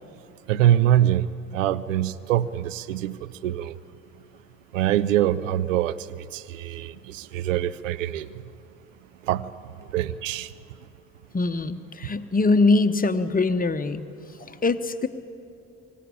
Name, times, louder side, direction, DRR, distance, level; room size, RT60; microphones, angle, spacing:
voice 1, 0.5-3.8 4.7-6.0 6.3-8.3 9.3-9.5 9.9-10.5, right 12 dB, 75° right, 18 dB, 0.6 m, -24 dB
voice 2, 11.3-14.0 14.4-15.1, left 3 dB, 20° left, 10 dB, 1.0 m, -22 dB
25.0 x 16.0 x 8.6 m, 2.6 s
figure-of-eight pair, 45°, 39 cm